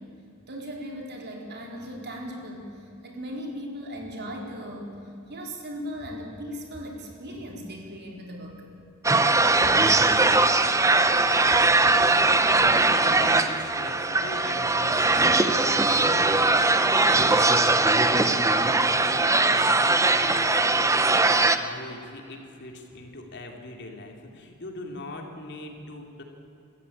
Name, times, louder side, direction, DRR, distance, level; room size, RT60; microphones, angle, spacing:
voice 1, 0.5-5.0 5.2-8.6, equal, 50° right, 0 dB, 4.2 m, -37 dB
sound 1, 9.0-21.6, right 3 dB, 15° right, 0.8 m, -20 dB
voice 2, 11.5-26.2, left 1 dB, 55° left, 2 dB, 3.0 m, -40 dB
26.0 x 14.0 x 8.7 m, 2.6 s
head